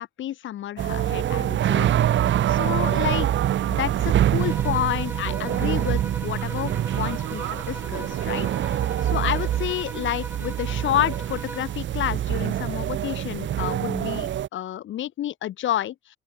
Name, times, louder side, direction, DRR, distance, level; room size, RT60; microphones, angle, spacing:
voice 1, 0.0-1.9 2.2-3.3 3.7-16.2, left 12 dB, 75° left, 3.8 m, -30 dB
sound 1, 0.8-14.5, right 11 dB, 70° right, 2.8 m, -25 dB
sound 2, 1.7-8.6, right 15 dB, 90° right, 4.2 m, -36 dB
sound 3, 4.4-11.8, right 1 dB, 10° right, 5.6 m, -40 dB
open air
cardioid pair, 90°, 20 cm